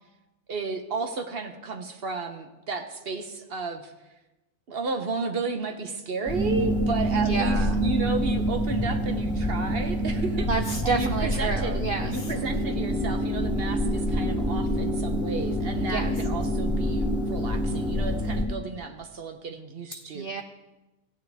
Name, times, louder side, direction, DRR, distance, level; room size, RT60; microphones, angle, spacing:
voice 1, 0.5-3.9 4.7-10.5 10.8-11.8 12.1-20.3, right 3 dB, 50° right, 6 dB, 0.9 m, -33 dB
sound 1, 6.3-18.4, equal, 5° right, 2.1 m, -26 dB
voice 2, 7.2-7.8 10.5-12.3 15.9-16.1 20.1-20.4, right 4 dB, 80° right, 7 dB, 0.5 m, -29 dB
15.0 x 9.3 x 3.4 m, 1.0 s
omnidirectional pair, 1.5 m